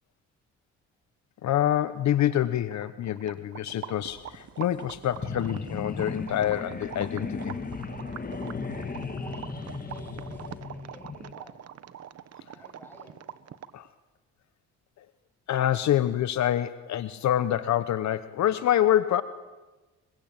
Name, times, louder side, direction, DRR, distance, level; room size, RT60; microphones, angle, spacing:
voice 1, 1.4-7.6 13.7-13.9 15.0-15.1 15.5-19.2, left 11 dB, 65° left, 13 dB, 1.0 m, -26 dB
sound 1, 2.2-13.9, right 9 dB, 55° right, 1.2 m, -44 dB
sound 2, 4.0-10.6, equal, 15° right, 6.5 m, -57 dB
sound 3, 5.1-11.3, left 4 dB, 30° left, 2.1 m, -36 dB
voice 2, 9.0-11.6 12.5-13.2, left 1 dB, 5° left, 3 dB, 7.9 m, -52 dB
23.0 x 22.5 x 8.9 m, 1.2 s
cardioid pair, 90°, 30 cm